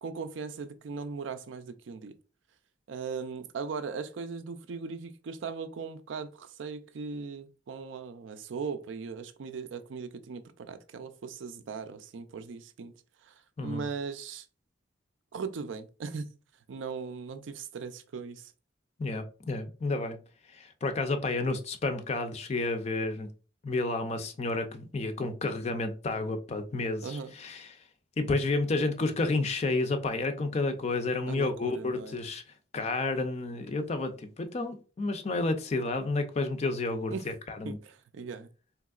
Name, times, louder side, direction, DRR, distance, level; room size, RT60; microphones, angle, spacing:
voice 1, 0.0-2.1 2.9-12.9 13.2-14.5 15.3-16.3 16.7-18.5 27.0-27.3 31.3-32.2 37.1-37.2 37.6-38.5, right 5 dB, 80° right, 0.4 m, -38 dB
voice 2, 19.0-20.2 20.5-23.3 23.6-27.8 28.2-32.4 32.7-37.8, left 3 dB, 35° left, 0.4 m, -31 dB
3.4 x 2.9 x 2.3 m
head